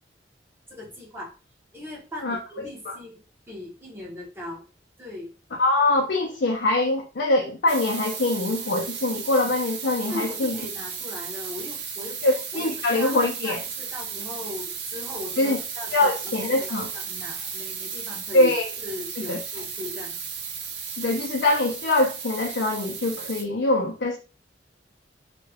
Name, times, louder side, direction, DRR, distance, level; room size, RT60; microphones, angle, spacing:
voice 1, 0.7-1.4 1.7-4.6 5.0-5.3 10.1-12.3 12.5-18.5 18.8-20.2, left 1 dB, 15° right, 1.0 m, -38 dB
voice 2, 5.6-10.6 12.2-13.6 15.4-15.6 15.9-16.9 18.3-18.6 19.3-19.4 20.9-24.2, left 2 dB, 65° left, 0.5 m, -23 dB
sound 1, 7.7-23.4, right 6 dB, 70° right, 0.6 m, -35 dB
3.2 x 2.2 x 3.4 m
head